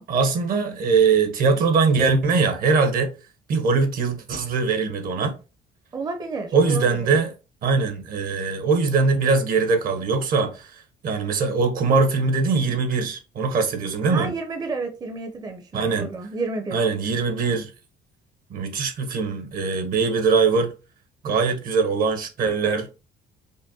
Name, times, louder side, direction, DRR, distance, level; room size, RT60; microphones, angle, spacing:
voice 1, 0.1-3.1 3.5-5.3 6.5-7.3 7.6-14.3 15.7-16.1 16.7-17.7 18.5-20.7 21.2-22.9, right 4 dB, 60° right, 0.9 m, -21 dB
voice 2, 5.9-7.2 14.1-16.8, right 3 dB, 25° right, 0.5 m, -31 dB
5.1 x 2.1 x 2.7 m
cardioid pair, 110°, 17 cm